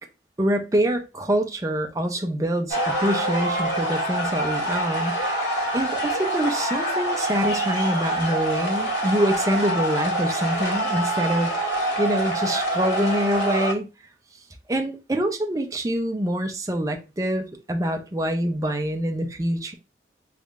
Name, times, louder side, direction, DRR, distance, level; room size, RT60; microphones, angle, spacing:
voice 1, 0.4-5.1 5.7-11.5 12.0-13.9 14.7-19.7, right 1 dB, 20° right, 0.4 m, -25 dB
sound 1, 2.7-13.7, right 1 dB, 80° left, 2.1 m, -25 dB
3.5 x 3.1 x 2.4 m
head